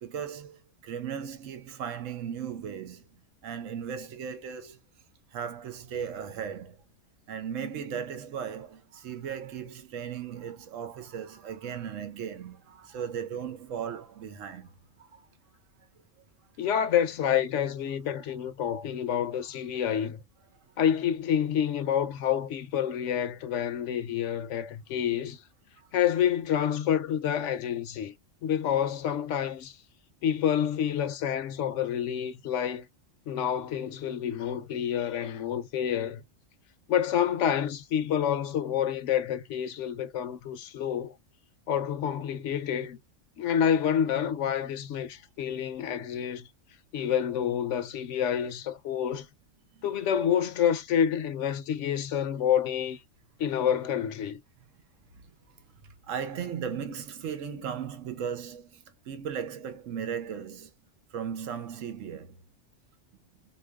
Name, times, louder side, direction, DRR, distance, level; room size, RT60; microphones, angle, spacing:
voice 1, 0.0-3.1 3.4-4.8 5.3-6.8 7.3-14.7 15.0-15.3 18.3-18.4 19.5-19.6 19.9-20.0 20.8-21.0 23.2-23.3 49.7-50.2 55.1-55.3 56.1-60.7 61.1-62.4, right 7 dB, 90° right, 1.1 m, -37 dB
voice 2, 16.6-20.2 20.8-25.4 25.9-28.1 28.4-29.8 30.2-32.9 33.3-36.2 36.9-41.2 41.7-43.0 43.4-46.5 46.9-49.3 49.8-53.0 53.4-54.4, left 9 dB, 75° left, 0.9 m, -28 dB
4.1 x 2.8 x 2.2 m
omnidirectional pair, 1.3 m